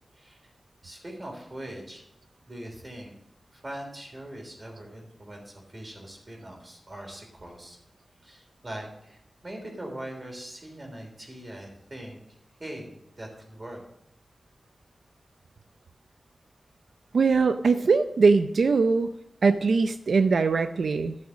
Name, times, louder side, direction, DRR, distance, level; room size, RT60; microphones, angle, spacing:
voice 1, 0.8-2.0 2.5-3.1 3.5-7.8 8.2-12.2 12.6-13.8, right 1 dB, 35° right, 1 dB, 3.4 m, -41 dB
voice 2, 17.1-19.1 19.4-21.2, right 4 dB, 90° right, 9 dB, 0.5 m, -21 dB
12.5 x 6.4 x 6.3 m, 0.80 s
wide cardioid pair, 105°, 0 cm